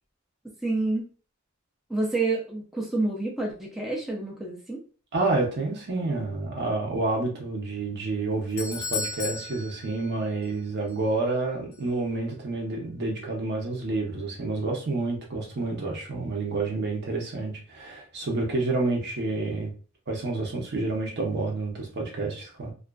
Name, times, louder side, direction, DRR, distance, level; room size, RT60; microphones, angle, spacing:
voice 1, 0.6-1.1 1.9-4.8, right 2 dB, ahead, -2 dB, 0.4 m, -28 dB
voice 2, 5.1-19.7 20.1-22.7, right 3 dB, 55° right, 0 dB, 0.7 m, -29 dB
Doorbell, 8.1-10.6 10.9-11.0 11.7-11.8, left 4 dB, 80° left, 0.6 m, -35 dB
2.4 x 2.3 x 2.2 m, 0.38 s
head